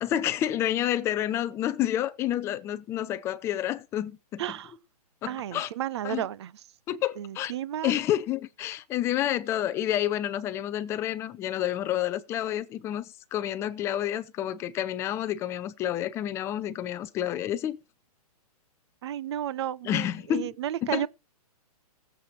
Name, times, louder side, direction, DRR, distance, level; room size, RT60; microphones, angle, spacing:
voice 1, 0.0-4.4 5.2-5.7 6.0-6.2 6.9-7.5 7.8-13.0 13.3-17.8 19.9-20.5 20.9-21.1, left 12 dB, 15° left, 0.5 m, -29 dB
voice 2, 4.4-4.7 5.3-6.5 7.2-7.9 19.0-21.1, right 11 dB, 45° right, 0.6 m, -32 dB
19.0 x 7.6 x 3.1 m
hypercardioid pair, 155°, 20 cm